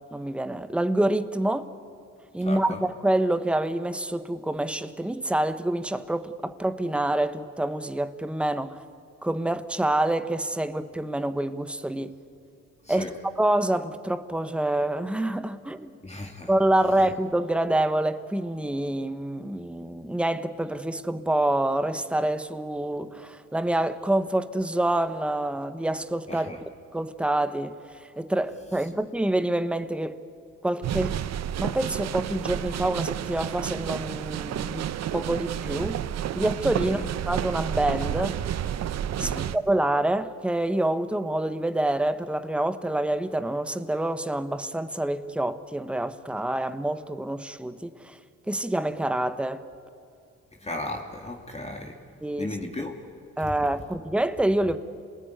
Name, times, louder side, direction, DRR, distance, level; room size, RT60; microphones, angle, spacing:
voice 1, 0.1-1.7 2.3-8.8 9.2-12.2 12.9-13.1 13.4-15.9 16.5-26.6 26.9-27.7 28.2-30.2 30.6-31.2 31.6-36.0 36.3-38.4 39.2-48.2 48.5-49.7 52.2-52.6 53.4-54.8, right 1 dB, 5° right, 1.0 m, -27 dB
voice 2, 2.4-2.8 12.8-13.1 16.0-16.5 26.3-26.6 36.8-37.1 39.2-39.6 50.6-52.0 52.4-52.9 53.4-53.5, left 2 dB, 20° left, 2.1 m, -35 dB
sound 1, 30.8-39.6, right 10 dB, 60° right, 0.8 m, -30 dB
27.5 x 19.5 x 9.3 m
cardioid pair, 90°, 30 cm